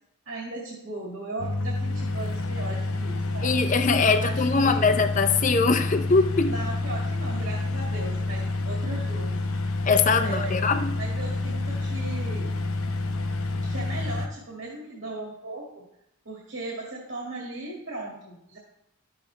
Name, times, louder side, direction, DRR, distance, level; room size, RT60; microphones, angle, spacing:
voice 1, 0.3-3.5 4.0-5.0 6.5-9.4 10.2-10.5 11.0-12.6 13.6-15.8 16.3-18.6, right 2 dB, 65° right, -4 dB, 2.0 m, -37 dB
sound 1, 1.4-14.3, left 2 dB, 80° left, 0.7 m, -28 dB
voice 2, 3.4-6.5 9.8-11.0, left 4 dB, 35° left, 7 dB, 0.6 m, -22 dB
12.5 x 6.6 x 3.3 m, 0.78 s
head